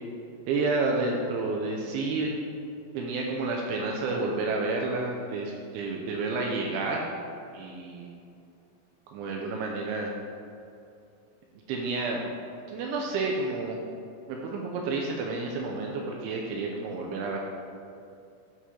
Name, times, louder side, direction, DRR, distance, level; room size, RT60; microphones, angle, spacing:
voice 1, 0.5-2.3 2.9-7.1 7.5-8.1 9.1-10.1 11.7-12.2 12.7-13.8 14.3-17.4, right 3 dB, 85° right, 0 dB, 2.6 m, -30 dB
10.0 x 4.7 x 4.3 m, 2.5 s
omnidirectional pair, 6.0 m